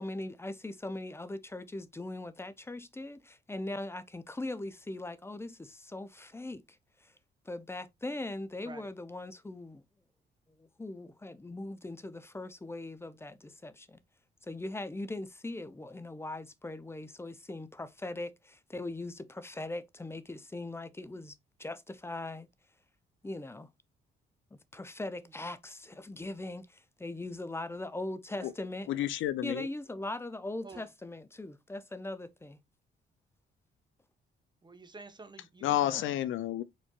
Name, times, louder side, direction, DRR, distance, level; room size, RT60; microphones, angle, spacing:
voice 1, 0.0-7.1 7.5-9.8 10.6-14.0 14.4-22.5 23.2-23.7 24.7-28.9 29.4-32.6 35.8-36.1, left 2 dB, 10° left, 0.6 m, -40 dB
voice 2, 28.9-29.7 35.6-36.6, left 12 dB, 75° left, 0.5 m, -30 dB
voice 3, 34.6-36.0, right 3 dB, 20° right, 1.0 m, -49 dB
4.4 x 4.4 x 2.4 m
cardioid pair, 90°, 20 cm